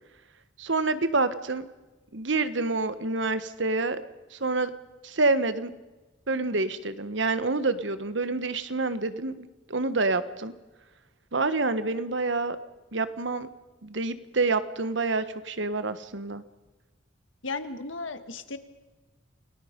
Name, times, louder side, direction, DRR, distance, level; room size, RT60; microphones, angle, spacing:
voice 1, 0.6-1.7 2.1-4.0 4.3-4.7 5.0-5.7 6.3-10.5 11.3-12.6 12.9-13.5 13.8-16.4, right 3 dB, 70° right, 13 dB, 1.4 m, -27 dB
voice 2, 17.4-18.6, left 3 dB, 90° left, 10 dB, 1.8 m, -35 dB
29.0 x 19.0 x 5.3 m, 1.2 s
head